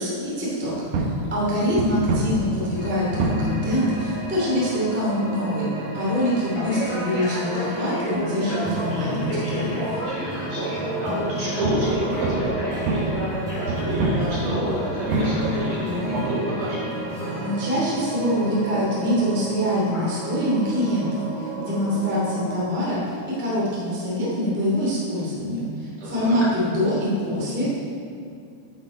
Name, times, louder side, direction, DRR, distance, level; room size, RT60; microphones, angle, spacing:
voice 1, 0.0-5.7 5.9-9.8 17.4-27.7, equal, 5° right, -7 dB, 1.4 m, -24 dB
sound 1, 0.6-20.0, right 1 dB, 75° right, 2.8 m, -30 dB
sound 2, 2.7-22.7, right 1 dB, 50° left, 4.2 m, -32 dB
sound 3, 8.6-20.3 20.6-22.5 23.0-23.1, equal, 35° right, 0.4 m, -36 dB
voice 2, 9.9-13.2 13.7-16.8 26.0-26.4, right 1 dB, 50° right, -7 dB, 3.1 m, -30 dB
10.0 x 9.5 x 4.3 m, 2.4 s
omnidirectional pair, 5.1 m